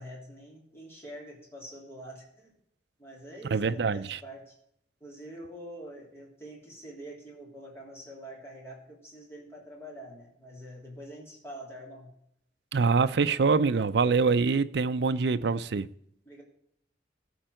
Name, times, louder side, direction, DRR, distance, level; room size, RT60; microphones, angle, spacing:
voice 1, 0.0-2.5 3.0-4.6 5.0-12.1 16.2-16.4, right 1 dB, 15° left, 3.0 m, -45 dB
voice 2, 3.5-4.2 12.7-15.9, right 4 dB, 65° right, 0.5 m, -25 dB
13.0 x 4.5 x 7.7 m
head